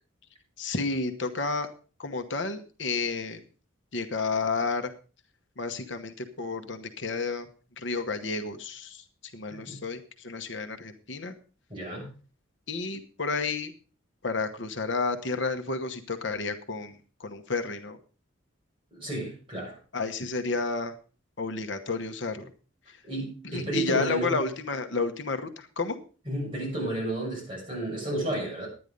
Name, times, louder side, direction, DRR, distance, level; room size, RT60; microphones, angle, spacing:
voice 1, 0.6-1.7 2.0-3.4 3.9-4.9 5.6-7.5 7.8-9.0 9.3-11.3 12.7-13.7 14.2-18.0 19.9-20.9 21.4-22.5 23.4-26.0, left 4 dB, 60° left, 7 dB, 1.0 m, -31 dB
voice 2, 11.7-12.1 18.9-19.8 23.0-24.4 26.3-28.7, right 1 dB, 25° right, -3 dB, 7.2 m, -32 dB
11.0 x 9.8 x 5.2 m, 0.37 s
head